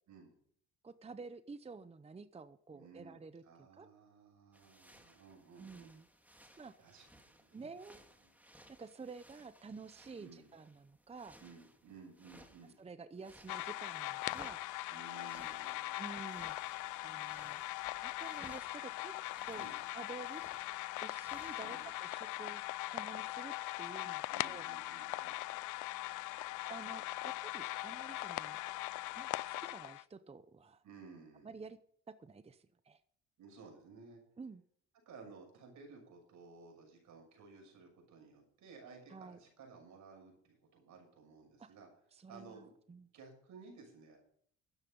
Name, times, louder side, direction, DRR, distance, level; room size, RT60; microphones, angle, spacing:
voice 1, 0.8-3.9 5.6-6.0 6.6-6.7 7.5-8.0 8.7-11.4 12.8-14.6 16.0-16.6 17.0-17.6 18.0-19.1 19.4-19.7 19.9-20.4 21.0-22.6 22.9-24.7 26.7-28.6 29.1-30.8 31.4-31.8 32.1-33.0 34.4-34.6 39.1-39.4 41.6-41.7 42.1-43.1, right 4 dB, 20° right, 13 dB, 0.7 m, -50 dB
voice 2, 2.7-3.2 3.4-5.9 6.8-7.7 8.2-8.3 10.2-10.5 11.4-12.8 14.9-16.0 19.6-19.7 21.6-21.8 24.3-25.4 30.8-31.6 33.4-34.2 35.1-41.9 42.3-42.7 43.1-44.2, right 4 dB, 75° right, 2 dB, 6.8 m, -56 dB
sound 1, 4.5-12.8 13.1-21.9, equal, 5° right, 2.0 m, -62 dB
sound 2, 13.5-30.0, left 18 dB, 80° left, 0.5 m, -41 dB
13.0 x 9.8 x 5.4 m, 0.63 s
cardioid pair, 90°, 30 cm